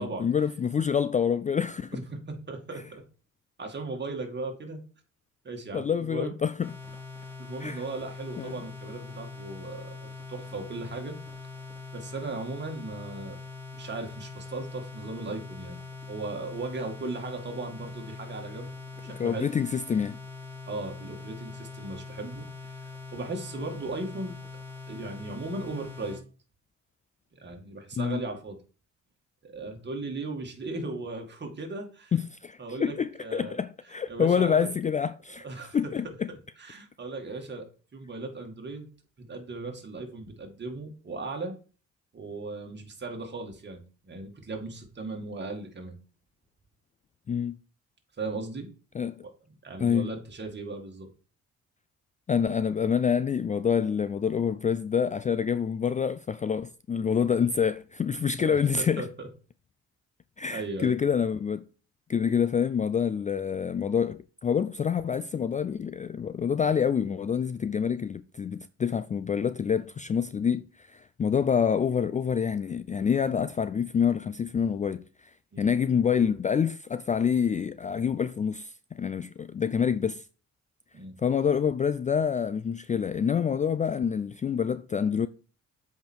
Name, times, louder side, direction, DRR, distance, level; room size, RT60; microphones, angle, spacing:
voice 1, 0.0-2.0 5.7-6.7 7.6-7.8 8.4-8.5 19.2-20.2 28.0-28.2 32.1-35.5 35.7-36.3 47.3-47.6 48.9-49.2 49.8-50.1 52.3-59.1 60.4-61.6 62.1-75.3 75.6-80.2 81.2-85.3, left 7 dB, 25° left, 0.3 m, -27 dB
voice 2, 1.9-3.0 3.6-4.8 5.4-6.4 7.4-11.2 11.9-13.4 13.7-15.8 16.1-18.7 19.0-19.5 20.7-24.3 24.9-26.2 27.3-28.6 29.4-32.1 32.6-33.6 34.1-34.7 35.4-35.9 36.3-38.9 39.2-41.6 42.1-46.0 48.2-48.7 49.2-49.3 49.6-51.1 58.4-59.3 60.5-61.0 75.5-75.7 80.9-81.2, right 3 dB, 35° right, 2.2 m, -37 dB
sound 1, 6.6-26.2, left 3 dB, 5° left, 3.0 m, -43 dB
7.8 x 5.2 x 4.6 m
cardioid pair, 90°, 30 cm